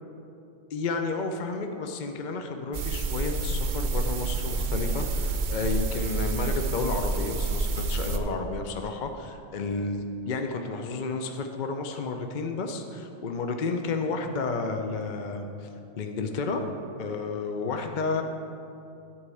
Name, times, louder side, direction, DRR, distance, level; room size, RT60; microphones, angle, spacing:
voice 1, 0.7-15.7 16.0-16.6 17.0-18.2, left 3 dB, 50° left, 5 dB, 0.6 m, -31 dB
sound 1, 2.7-8.2, right 3 dB, 50° right, 0.7 m, -28 dB
11.5 x 4.8 x 8.3 m, 2.8 s
omnidirectional pair, 1.3 m